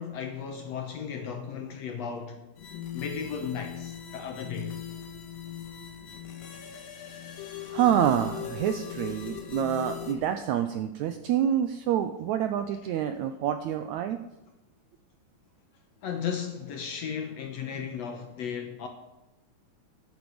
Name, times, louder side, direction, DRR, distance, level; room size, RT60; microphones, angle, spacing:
voice 1, 0.0-2.4 2.9-4.8 10.1-10.2 16.0-18.9, left 7 dB, 70° left, 1.7 m, -35 dB
sound 1, 2.6-10.1, left 10 dB, 85° left, 3.2 m, -39 dB
voice 2, 7.7-14.2, right 10 dB, 80° right, 1.7 m, -27 dB
13.5 x 9.6 x 5.1 m
omnidirectional pair, 3.9 m